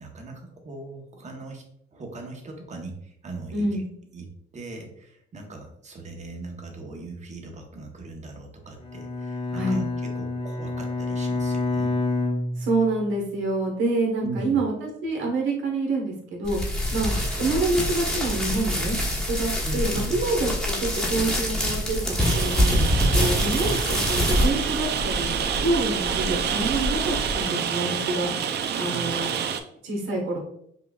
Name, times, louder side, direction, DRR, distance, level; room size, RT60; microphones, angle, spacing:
voice 1, 0.0-1.6 1.9-3.8 4.1-9.8 10.1-12.0 14.2-14.6 17.1-17.6 19.6-20.2 23.9-24.3 28.7-29.3, right 2 dB, 35° right, 2 dB, 0.9 m, -39 dB
voice 2, 3.5-3.9 9.5-9.8 12.6-16.6 16.9-19.0 19.3-25.3 25.6-28.3 28.8-29.3 29.8-30.4, right 2 dB, 80° right, 0 dB, 1.2 m, -27 dB
Bowed string instrument, 8.8-13.2, left 2 dB, 30° left, 0.7 m, -28 dB
sound 1, 16.4-27.4, left 1 dB, 5° left, 1.0 m, -26 dB
Rain, 22.2-29.6, right 7 dB, 60° right, 0.4 m, -28 dB
5.5 x 2.3 x 2.3 m, 0.71 s
cardioid pair, 90°, 20 cm